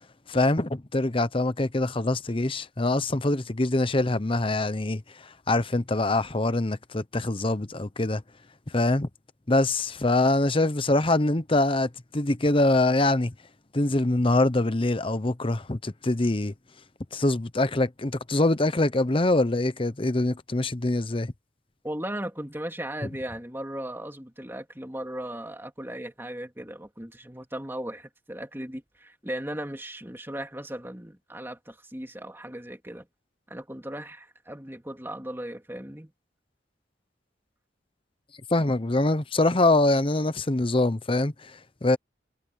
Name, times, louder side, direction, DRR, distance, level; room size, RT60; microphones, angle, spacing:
voice 1, 0.3-8.2 8.7-9.1 9.5-13.3 13.7-16.5 17.1-21.3 38.5-42.0, left 2 dB, 30° left, 0.9 m, -24 dB
voice 2, 21.8-33.1 33.5-36.1, right 1 dB, 10° right, 2.9 m, -37 dB
head